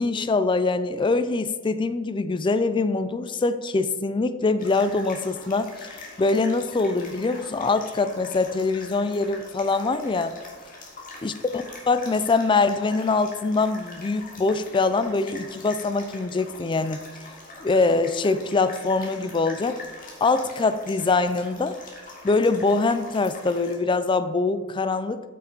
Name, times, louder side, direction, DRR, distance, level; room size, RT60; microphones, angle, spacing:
voice 1, 0.0-10.4 11.2-17.0 17.6-19.8 20.2-21.8 22.2-25.2, left 3 dB, 25° left, 12 dB, 0.4 m, -23 dB
sound 1, 4.6-23.7, left 2 dB, 45° left, 1.9 m, -44 dB
8.6 x 6.0 x 4.5 m, 1.4 s
head